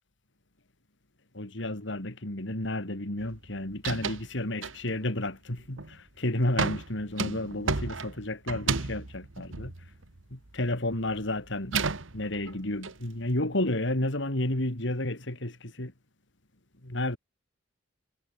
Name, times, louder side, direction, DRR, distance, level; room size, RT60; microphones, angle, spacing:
voice 1, 1.3-9.7 10.3-11.8 12.1-15.9 16.8-17.2, left 1 dB, 70° left, 3.5 m, -31 dB
sound 1, 3.2-3.5 3.7-4.3 4.6-5.1 5.6-6.0 6.6-10.6 10.9-12.9, right 4 dB, 85° right, 1.6 m, -33 dB
head